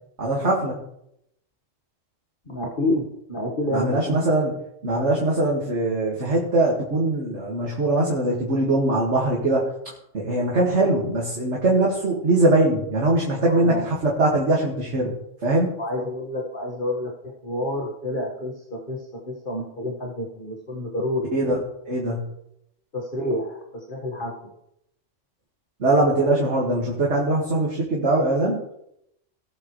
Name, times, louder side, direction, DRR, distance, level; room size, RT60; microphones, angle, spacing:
voice 1, 0.2-0.8 3.7-4.5 4.8-9.7 10.1-15.1 15.4-15.7 21.3-21.6 21.9-22.2 25.8-28.6, right 2 dB, 65° right, -3 dB, 2.4 m, -21 dB
voice 2, 2.5-4.5 13.4-13.9 15.8-21.3 22.9-24.5, left 1 dB, 45° left, -1 dB, 1.9 m, -29 dB
19.5 x 7.7 x 3.2 m, 0.78 s
omnidirectional pair, 1.3 m